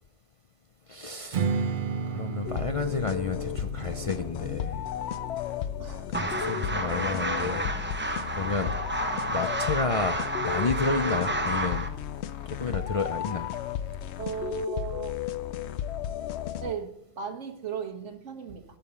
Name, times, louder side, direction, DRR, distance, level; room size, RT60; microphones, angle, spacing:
voice 1, 0.9-1.5 2.1-4.9 6.1-7.6 8.3-8.7 9.3-11.9 12.6-13.5, left 4 dB, 45° left, 8 dB, 0.4 m, -31 dB
Strum, 1.3-6.5, right 6 dB, 50° right, 0.7 m, -34 dB
sound 1, 2.4-16.7, left 10 dB, 70° left, 0.9 m, -34 dB
sound 2, 6.1-11.9, right 2 dB, 10° right, 0.7 m, -30 dB
voice 2, 14.2-15.2 16.6-18.6, right 7 dB, 85° right, 4 dB, 1.6 m, -36 dB
13.0 x 5.5 x 6.7 m, 0.76 s
omnidirectional pair, 1.2 m